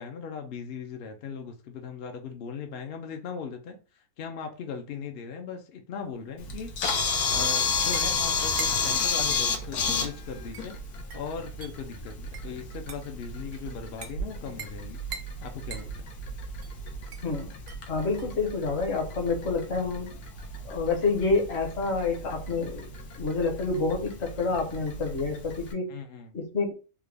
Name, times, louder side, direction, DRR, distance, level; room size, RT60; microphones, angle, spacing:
voice 1, 0.0-10.8 11.1-15.0 15.4-16.1 25.9-26.4, left 6 dB, 70° left, 0.5 m, -39 dB
sound 1, 6.1-20.0, right 5 dB, 70° right, 0.5 m, -46 dB
Camera, 6.4-25.7, left 4 dB, 90° left, 1.2 m, -32 dB
voice 2, 17.9-20.1 20.6-22.9 23.2-26.0 26.3-26.7, left 3 dB, 50° left, 1.0 m, -28 dB
3.6 x 2.1 x 3.3 m
omnidirectional pair, 1.6 m